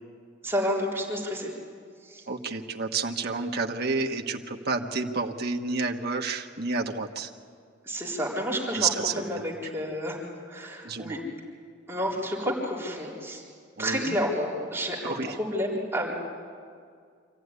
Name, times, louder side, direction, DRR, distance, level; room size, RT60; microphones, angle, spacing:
voice 1, 0.4-1.5 2.0-2.3 7.8-10.2 10.5-11.2 11.9-13.4 13.8-16.1, equal, 10° right, -5 dB, 4.1 m, -30 dB
voice 2, 2.3-7.3 8.7-9.5 10.8-11.2 13.8-14.2 15.0-15.4, right 4 dB, 55° right, 3 dB, 1.4 m, -30 dB
26.0 x 15.0 x 9.7 m, 2.2 s
head